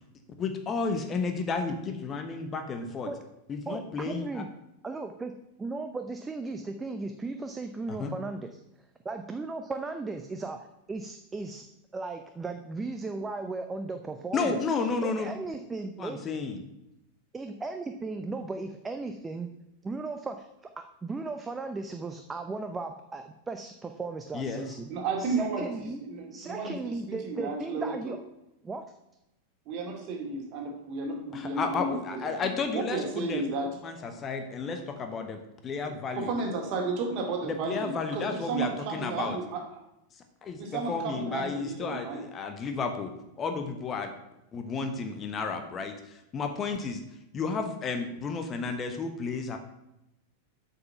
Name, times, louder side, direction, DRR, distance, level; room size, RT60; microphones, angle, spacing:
voice 1, 0.4-3.1 3.5-4.4 7.9-8.1 14.3-15.3 16.0-16.6 24.3-24.7 31.3-33.4 33.8-36.3 37.6-39.4 40.4-43.1 43.4-44.1 44.5-47.0 47.3-49.6, left 4 dB, 25° left, 6 dB, 1.0 m, -32 dB
voice 2, 3.7-4.5 4.8-5.3 5.6-8.5 9.0-10.6 10.9-11.7 11.9-14.6 15.0-16.2 17.3-19.5 19.8-20.5 21.0-24.9 25.2-26.0 26.3-28.2 28.6-28.8, right 3 dB, 15° right, 7 dB, 0.6 m, -36 dB
voice 3, 24.9-26.8 27.1-28.1 29.7-34.1 35.9-39.6 40.6-42.2, right 3 dB, 40° right, 2 dB, 2.2 m, -33 dB
7.8 x 5.6 x 5.7 m, 0.88 s
figure-of-eight pair, 90°, 0 cm